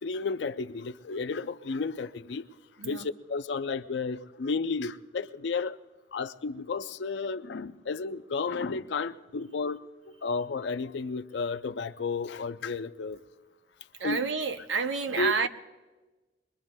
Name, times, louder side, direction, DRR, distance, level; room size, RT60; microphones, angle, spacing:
voice 1, 0.0-2.4 2.8-5.8 6.1-9.9 10.2-13.2 14.0-14.2 15.2-15.5, left 4 dB, 75° left, 0.4 m, -32 dB
voice 2, 14.0-15.5, right 5 dB, 90° right, 0.7 m, -29 dB
24.5 x 21.5 x 2.2 m
head